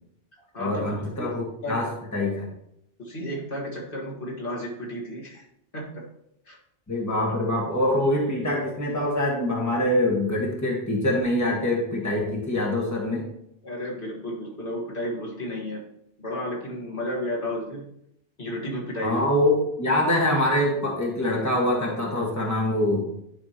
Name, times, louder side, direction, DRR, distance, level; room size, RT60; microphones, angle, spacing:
voice 1, 0.6-2.5 6.9-13.3 19.0-23.1, left 1 dB, 15° left, -2 dB, 1.7 m, -24 dB
voice 2, 1.2-1.8 3.0-5.4 5.7-6.0 6.5-6.6 13.6-15.8 16.2-17.8 18.4-19.2, equal, 55° left, -3 dB, 2.0 m, -32 dB
11.0 x 5.9 x 3.0 m, 0.75 s
omnidirectional pair, 1.1 m